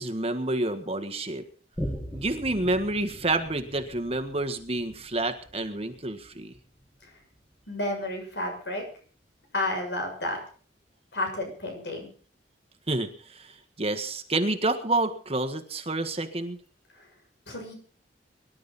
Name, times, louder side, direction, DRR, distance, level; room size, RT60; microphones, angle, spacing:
voice 1, 0.0-1.4 2.1-6.5 12.9-13.4 13.8-16.6, right 2 dB, 35° right, 8 dB, 1.6 m, -29 dB
Boom, 1.8-8.7 9.2-9.3, equal, 15° left, 2.6 m, -41 dB
voice 2, 7.7-8.8 9.5-10.4 11.1-12.1 17.0-17.1 17.5-17.7, left 1 dB, 70° left, 3 dB, 7.1 m, -31 dB
24.0 x 11.5 x 4.2 m, 0.42 s
head